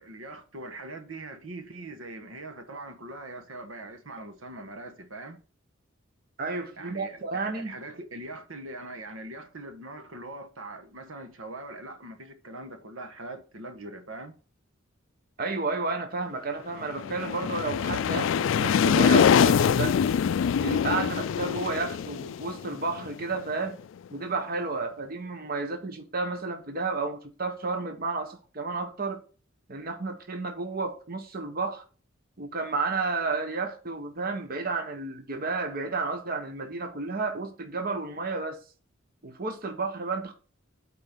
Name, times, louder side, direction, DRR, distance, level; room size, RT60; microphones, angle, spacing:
voice 1, 0.0-5.4 6.8-14.3, right 2 dB, 85° right, 1.3 m, -42 dB
voice 2, 6.4-7.8 15.4-20.0 20.6-23.8 24.1-29.2 29.7-31.8 32.4-38.6 39.2-40.3, right 3 dB, 45° right, 1.2 m, -32 dB
sound 1, 16.8-23.5, left 7 dB, 65° left, 0.3 m, -24 dB
8.7 x 4.5 x 5.9 m
head